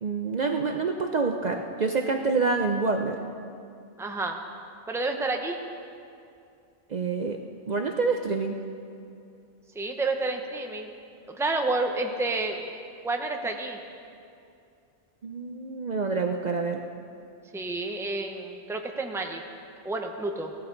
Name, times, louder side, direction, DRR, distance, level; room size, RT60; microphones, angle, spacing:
voice 1, 0.0-3.2 6.9-7.4 7.6-8.6 15.2-16.8, right 4 dB, 50° right, 4 dB, 0.7 m, -27 dB
voice 2, 4.0-4.4 4.9-5.6 9.7-10.9 11.3-12.7 13.0-13.8 17.5-19.4 19.8-20.5, right 2 dB, 5° right, 3 dB, 0.7 m, -29 dB
16.0 x 13.0 x 3.9 m, 2.5 s
omnidirectional pair, 1.1 m